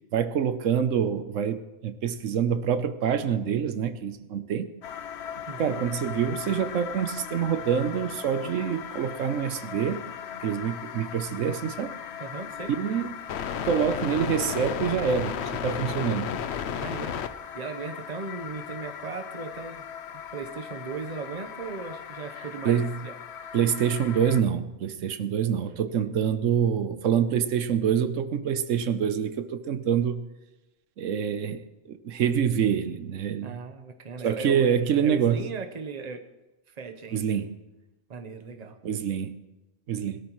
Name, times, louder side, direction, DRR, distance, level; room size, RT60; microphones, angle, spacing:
voice 1, 0.1-4.7 5.6-10.0 10.4-11.9 12.8-13.1 13.6-16.3 22.6-23.0 23.5-30.3 31.0-33.6 34.2-35.4 37.1-37.5 38.8-39.3 39.9-40.2, right 8 dB, 85° right, 10 dB, 1.1 m, -26 dB
sound 1, 4.8-24.4, left 8 dB, 65° left, 0.9 m, -36 dB
voice 2, 5.5-5.8 12.2-12.7 16.8-17.2 17.5-19.9 20.3-23.1 26.0-26.1 33.4-34.7 35.0-36.2 36.7-37.4 38.1-38.8, right 4 dB, 35° right, 7 dB, 1.0 m, -37 dB
21.0 x 13.0 x 3.1 m, 1.0 s
omnidirectional pair, 1.3 m